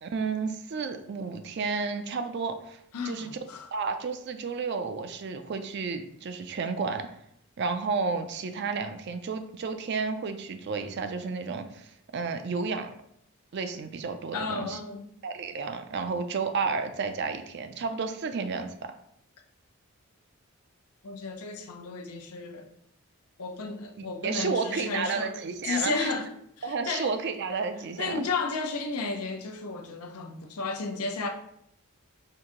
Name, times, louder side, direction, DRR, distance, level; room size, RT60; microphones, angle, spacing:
voice 1, 0.0-3.3 3.7-7.1 7.6-12.9 13.5-14.8 15.2-18.9 24.0-26.1 26.6-28.2, right 4 dB, 50° right, 0.4 m, -32 dB
voice 2, 2.9-3.7 14.3-15.1 21.0-22.7 23.4-25.3 25.6-26.3 26.6-27.1 28.0-31.3, left 4 dB, 85° left, 0.6 m, -33 dB
4.6 x 2.6 x 3.7 m
head